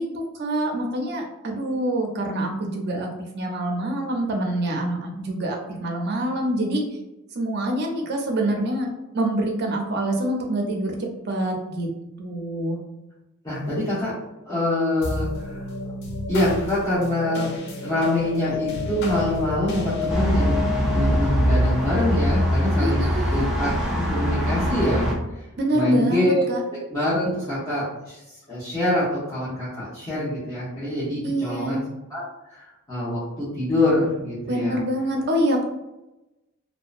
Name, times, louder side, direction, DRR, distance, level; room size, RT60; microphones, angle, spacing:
voice 1, 0.0-3.1 3.3-6.8 7.3-8.9 9.1-11.9 12.2-12.8 22.8-23.5 25.6-26.6 31.2-31.8 34.5-35.6, right 1 dB, 50° right, 1 dB, 0.5 m, -26 dB
voice 2, 13.4-14.1 14.4-15.7 16.3-17.5 17.8-23.7 23.9-25.4 25.7-26.5 26.9-31.8 32.1-32.2 32.5-34.8, left 1 dB, 15° left, -12 dB, 0.9 m, -25 dB
sound 1, 15.0-23.7, left 4 dB, 55° left, 0.5 m, -31 dB
sound 2, 20.1-25.1, equal, 5° right, 0.5 m, -22 dB
2.7 x 2.1 x 2.4 m, 0.97 s
head